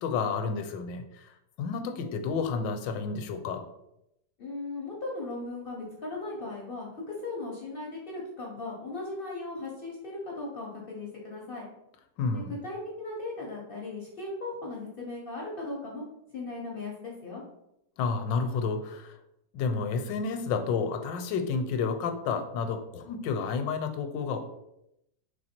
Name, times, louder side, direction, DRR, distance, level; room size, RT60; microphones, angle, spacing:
voice 1, 0.0-1.3 1.6-3.6 12.2-12.5 18.0-19.2 19.5-24.4, left 5 dB, 80° left, 6 dB, 1.2 m, -30 dB
voice 2, 4.4-11.7 12.3-16.0 16.3-17.4, left 2 dB, 60° left, -2 dB, 0.5 m, -37 dB
3.2 x 3.0 x 4.2 m, 0.84 s
omnidirectional pair, 2.0 m